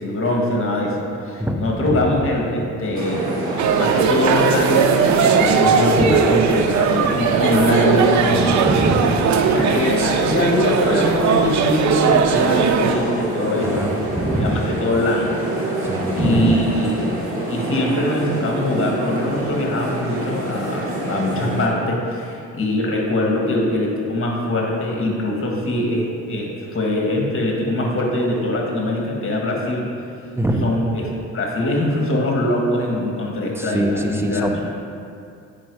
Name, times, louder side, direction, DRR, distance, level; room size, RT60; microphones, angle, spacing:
voice 1, 0.0-3.3 3.8-4.9 5.2-8.5 9.1-9.2 9.5-13.8 14.4-15.4 16.1-30.0 30.6-34.5, left 1 dB, 45° left, -1 dB, 1.7 m, -22 dB
voice 2, 1.4-2.2 6.0-6.1 8.3-9.3 13.6-14.7 15.8-16.6 30.4-30.7 33.6-34.7, right 1 dB, 10° right, 3 dB, 0.7 m, -23 dB
sound 1, 2.9-21.7, right 2 dB, 45° right, 2.1 m, -26 dB
sound 2, 3.6-13.0, right 7 dB, 70° right, 0.6 m, -19 dB
8.6 x 5.3 x 4.8 m, 2.5 s
cardioid pair, 90°, 30 cm